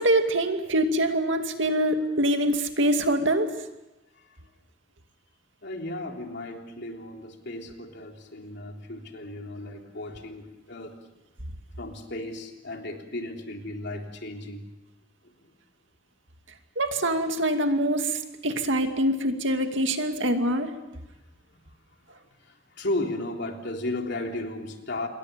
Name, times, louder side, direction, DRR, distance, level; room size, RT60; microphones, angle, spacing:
voice 1, 0.0-3.5 16.8-20.7, right 1 dB, 75° right, 5 dB, 2.4 m, -24 dB
voice 2, 5.6-11.1 11.8-14.7 15.2-15.3 22.4-25.1, left 1 dB, 65° left, 2 dB, 3.5 m, -35 dB
28.0 x 22.5 x 7.0 m, 0.98 s
head